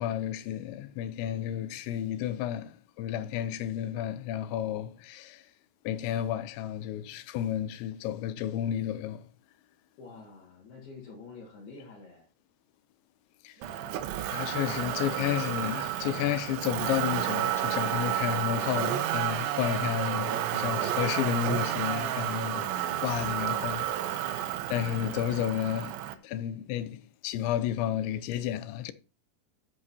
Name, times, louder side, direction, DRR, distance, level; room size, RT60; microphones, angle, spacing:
voice 1, 0.0-5.4 5.8-9.3 13.4-13.6 14.3-22.7 23.0-26.0 26.2-28.9, left 11 dB, 80° left, 3.0 m, -32 dB
voice 2, 10.0-12.3 22.7-23.1, left 4 dB, 60° left, 3.7 m, -48 dB
sound 1, 13.5-16.4 17.1-19.0 19.4-20.5, right 4 dB, 65° right, 3.8 m, -51 dB
Motor vehicle (road), 13.6-26.1, right 12 dB, 80° right, 3.1 m, -31 dB
12.0 x 8.4 x 2.8 m
omnidirectional pair, 5.4 m